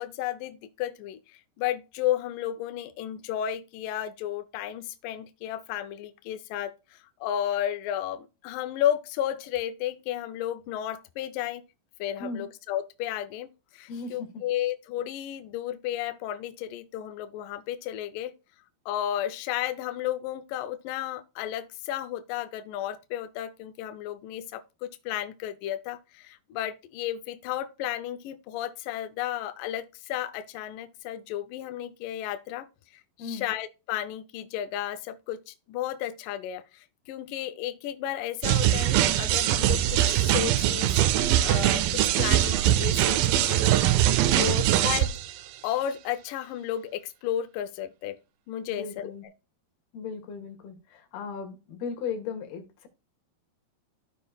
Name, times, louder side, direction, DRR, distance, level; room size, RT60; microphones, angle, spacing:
voice 1, 0.0-11.6 12.0-18.3 18.9-32.7 33.2-40.9 41.4-43.9 44.4-45.2 45.6-48.2 48.5-49.1, left 11 dB, 85° left, 1.9 m, -33 dB
voice 2, 13.9-14.4 33.2-33.5 44.3-44.6 48.7-49.3 49.9-52.9, left 5 dB, 70° left, 3.3 m, -37 dB
sound 1, 38.4-45.3, right 13 dB, 80° right, 2.2 m, -22 dB
14.5 x 5.2 x 2.4 m
omnidirectional pair, 4.9 m